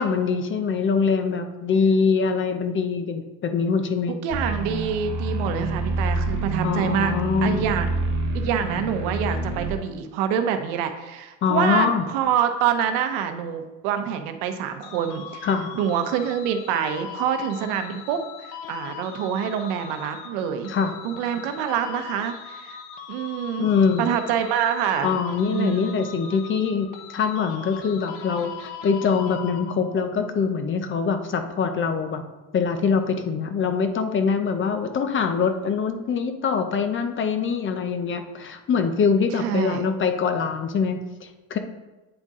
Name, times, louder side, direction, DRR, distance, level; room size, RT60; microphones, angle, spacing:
voice 1, 0.0-4.2 6.6-7.6 11.4-12.0 15.4-15.8 20.7-20.9 23.6-24.1 25.0-32.2 32.5-41.6, left 5 dB, 30° left, 7 dB, 0.6 m, -23 dB
voice 2, 4.2-7.1 7.4-7.9 8.3-15.5 15.7-20.7 21.0-22.8 23.1-23.7 24.0-25.2 25.5-26.0 39.3-39.9, right 8 dB, 85° right, 8 dB, 0.8 m, -26 dB
sound 1, 4.3-9.7, right 2 dB, 45° right, 1.0 m, -27 dB
sound 2, 14.8-30.1, left 7 dB, 80° left, 0.9 m, -40 dB
8.8 x 4.0 x 3.6 m, 1.1 s
cardioid pair, 125°, 39 cm